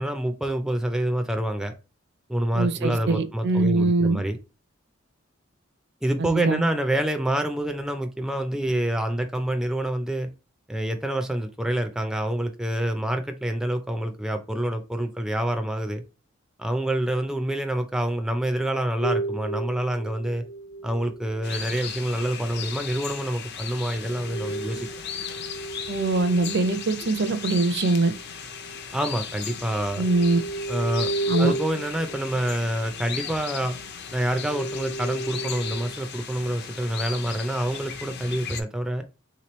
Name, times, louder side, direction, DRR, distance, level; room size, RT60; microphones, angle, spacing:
voice 1, 0.0-1.7 2.3-4.4 6.0-10.3 10.7-16.0 16.6-20.4 20.8-24.9 28.9-30.1 30.7-31.1 31.4-33.8 34.1-39.0, right 1 dB, 5° right, 0.3 m, -27 dB
voice 2, 2.5-4.2 6.2-6.6 25.9-28.1 30.0-30.4 31.3-31.5, right 3 dB, 55° right, 0.5 m, -22 dB
sound 1, 19.0-22.2 23.9-29.0 29.4-33.8 34.2-36.0 36.8-37.3, right 2 dB, 80° left, 1.0 m, -35 dB
sound 2, 21.4-38.6, left 7 dB, 55° left, 0.6 m, -37 dB
3.4 x 2.9 x 3.0 m
head